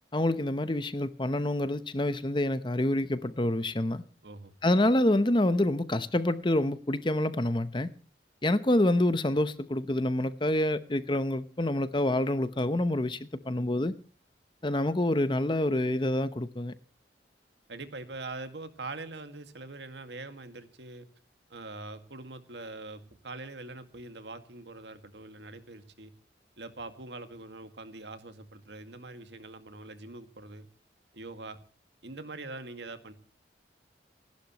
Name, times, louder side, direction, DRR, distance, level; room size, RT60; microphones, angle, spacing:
voice 1, 0.1-4.0 4.6-7.9 8.4-13.9 14.6-16.7, left 1 dB, 25° left, 0.8 m, -27 dB
voice 2, 4.2-4.5 17.7-21.1 21.5-26.1 26.6-30.7 31.1-31.6 32.0-33.1, right 2 dB, 75° right, 2.0 m, -43 dB
28.0 x 12.0 x 3.0 m
head